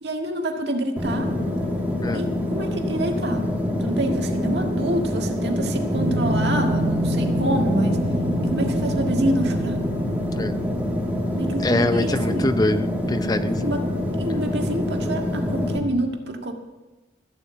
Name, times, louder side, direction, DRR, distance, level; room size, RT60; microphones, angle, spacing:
voice 1, 0.0-1.3 2.1-3.5 3.8-8.0 8.4-9.8 11.4-12.5 13.6-13.9 14.2-16.5, right 1 dB, 65° right, 3 dB, 1.8 m, -27 dB
sound 1, 1.0-15.8, left 1 dB, 10° right, 2.3 m, -25 dB
sound 2, 5.9-13.1, right 1 dB, 40° right, 2.2 m, -29 dB
voice 2, 11.6-13.6, left 1 dB, 20° left, 9 dB, 0.6 m, -24 dB
14.5 x 7.6 x 8.4 m, 1.1 s
head